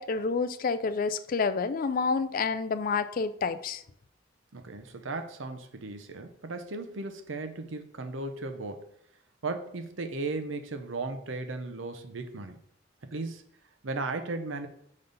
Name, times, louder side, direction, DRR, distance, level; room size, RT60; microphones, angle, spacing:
voice 1, 0.0-3.8, left 4 dB, 45° left, 0.4 m, -29 dB
voice 2, 4.5-8.9 9.4-12.6 13.1-13.4 13.8-14.7, right 3 dB, 80° right, 0.8 m, -36 dB
5.3 x 4.0 x 5.3 m
head